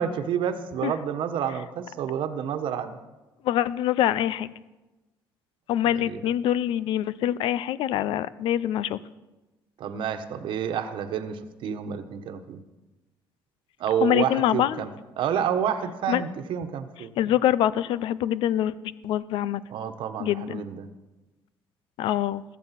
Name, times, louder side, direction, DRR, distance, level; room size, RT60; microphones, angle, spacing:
voice 1, 0.0-3.0 5.9-6.2 9.8-12.6 13.8-14.9 15.2-17.1 19.7-20.9, right 8 dB, 70° right, 8 dB, 1.2 m, -29 dB
voice 2, 3.4-4.5 5.7-9.0 14.0-14.8 16.1-16.2 17.2-18.7 19.0-19.6 20.2-20.6 22.0-22.4, left 11 dB, 80° left, 17 dB, 0.6 m, -24 dB
16.0 x 13.5 x 5.9 m, 1.1 s
cardioid pair, 95°, 9 cm